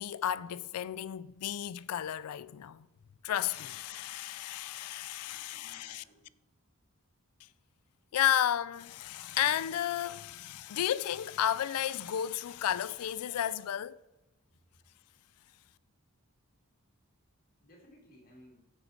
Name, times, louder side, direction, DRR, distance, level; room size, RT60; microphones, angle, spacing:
voice 1, 0.0-2.9 3.2-6.0 8.1-14.0, left 10 dB, 85° left, 0.4 m, -33 dB
voice 2, 5.2-6.3 17.6-18.6, left 1 dB, 40° left, 2.4 m, -58 dB
8.9 x 4.8 x 6.4 m
head